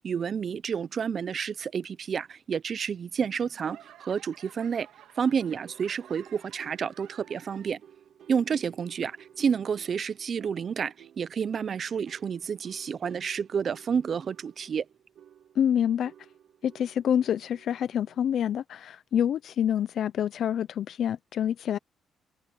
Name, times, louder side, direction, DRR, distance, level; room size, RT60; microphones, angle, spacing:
voice 1, 0.0-4.9 5.2-7.8 8.3-14.9, right 7 dB, 50° right, 0.6 m, -30 dB
Laughter / Clapping / Crowd, 3.1-7.9 8.2-8.8 9.3-9.4, right 12 dB, 85° right, 3.3 m, -54 dB
sound 1, 5.5-18.5, right 9 dB, 70° right, 2.3 m, -56 dB
voice 2, 15.6-16.1 16.6-21.8, left 9 dB, 65° left, 0.5 m, -27 dB
cardioid pair, 90°, 0 cm